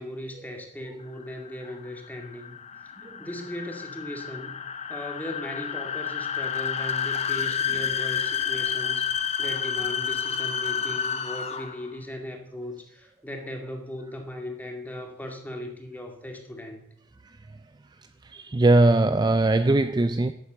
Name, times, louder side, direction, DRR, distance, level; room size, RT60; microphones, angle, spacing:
voice 1, 0.0-2.6 3.2-4.5 4.9-16.9, left 1 dB, 10° left, 3 dB, 2.2 m, -38 dB
sound 1, 1.2-11.9, left 8 dB, 35° left, 0.8 m, -30 dB
voice 2, 17.2-17.6 18.2-20.3, right 2 dB, 20° right, 10 dB, 0.4 m, -21 dB
11.5 x 8.4 x 7.8 m, 0.75 s
head